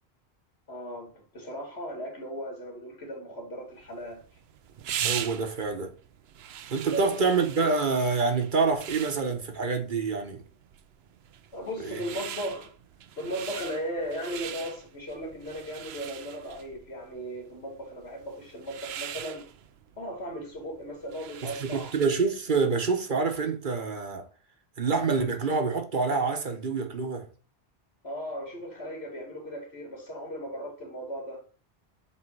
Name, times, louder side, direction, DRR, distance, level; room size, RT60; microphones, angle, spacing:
voice 1, 0.7-4.2 6.7-7.2 11.5-12.7 13.1-19.4 20.0-21.9 28.0-31.4, equal, 80° left, 2.6 m, -37 dB
sound 1, 3.8-22.3, right 9 dB, 75° right, 0.9 m, -41 dB
voice 2, 5.0-5.9 6.7-10.4 11.8-12.0 21.4-24.3 24.8-27.3, right 4 dB, 50° right, 1.3 m, -27 dB
7.8 x 3.4 x 4.6 m
omnidirectional pair, 1.1 m